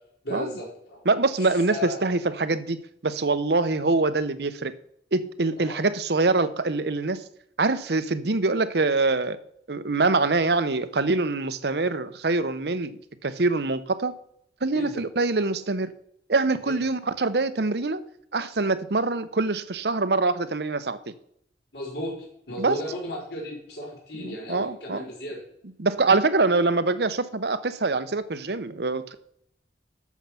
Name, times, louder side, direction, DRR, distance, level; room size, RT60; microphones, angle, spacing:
voice 1, 0.2-1.0 1.4-2.0 5.6-5.8 14.7-15.0 16.6-16.7 21.7-25.4, left 1 dB, 70° left, -2 dB, 5.1 m, -35 dB
voice 2, 1.1-2.8 3.0-4.7 5.1-7.2 7.6-9.4 9.7-14.1 14.6-15.9 16.3-18.0 18.3-21.1 22.6-22.7 24.1-25.1 25.8-29.1, right 3 dB, 70° right, 13 dB, 0.8 m, -24 dB
11.5 x 7.3 x 5.8 m, 0.70 s
head